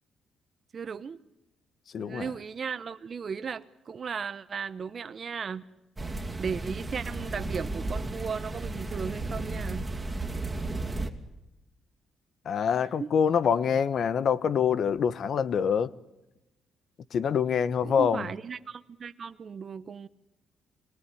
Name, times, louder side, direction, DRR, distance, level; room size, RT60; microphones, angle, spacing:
voice 1, 0.7-1.2 2.0-5.6 6.4-9.9 13.0-13.1 17.8-20.1, right 6 dB, 45° right, 0.9 m, -36 dB
voice 2, 1.9-2.3 12.4-15.9 17.1-18.3, left 7 dB, 60° left, 1.0 m, -25 dB
sound 1, 6.0-11.1, right 2 dB, 15° right, 2.4 m, -34 dB
25.0 x 19.5 x 9.8 m
cardioid pair, 90°, 0 cm